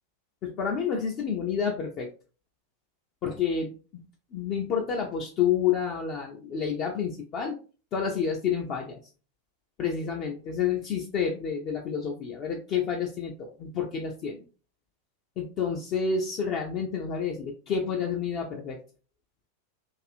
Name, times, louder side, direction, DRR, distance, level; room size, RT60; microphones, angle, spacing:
voice 1, 0.4-2.1 3.2-4.0 4.3-7.6 7.9-9.0 9.8-14.4 15.4-18.8, left 7 dB, 35° left, 1 dB, 0.4 m, -29 dB
2.6 x 2.4 x 2.4 m, 0.36 s
figure-of-eight pair, 90°, 0 cm